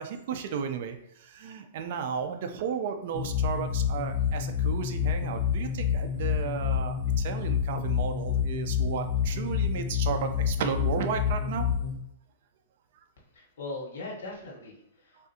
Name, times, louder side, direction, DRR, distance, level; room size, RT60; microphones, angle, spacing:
voice 1, 0.0-11.7 15.2-15.3, right 7 dB, 55° right, 6 dB, 0.4 m, -34 dB
sound 1, 3.1-11.9, left 8 dB, 10° right, 1.2 m, -28 dB
voice 2, 13.3-15.3, left 2 dB, 70° left, -2 dB, 1.1 m, -40 dB
3.5 x 2.5 x 2.7 m, 0.76 s
hypercardioid pair, 145°, 0 cm